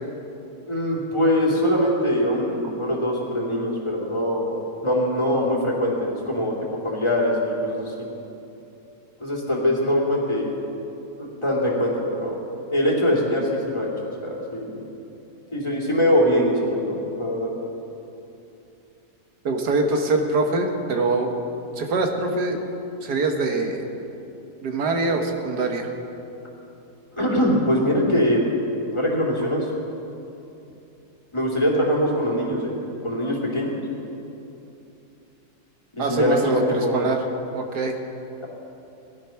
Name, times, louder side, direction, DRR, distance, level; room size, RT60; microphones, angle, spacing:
voice 1, 0.7-8.1 9.2-10.5 11.2-12.4 12.7-13.9 14.2-14.8 15.5-17.5 27.1-28.5 28.9-29.7 31.3-32.7 33.0-33.8 35.9-37.0 38.4-38.5, equal, 20° left, -4 dB, 2.7 m, -23 dB
voice 2, 19.5-21.3 21.8-22.6 23.0-23.8 24.6-25.9 36.0-37.2 37.5-38.0, right 3 dB, 85° right, 3 dB, 1.9 m, -23 dB
18.0 x 12.0 x 5.8 m, 2.9 s
omnidirectional pair, 1.7 m